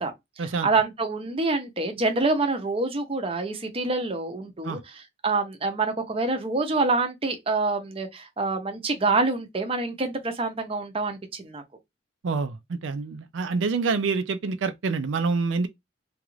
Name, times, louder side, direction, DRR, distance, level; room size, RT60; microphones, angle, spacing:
voice 1, 0.0-11.6, right 3 dB, 30° right, 0.6 m, -26 dB
voice 2, 12.2-15.7, right 4 dB, 80° right, 0.4 m, -27 dB
2.9 x 2.4 x 3.1 m
head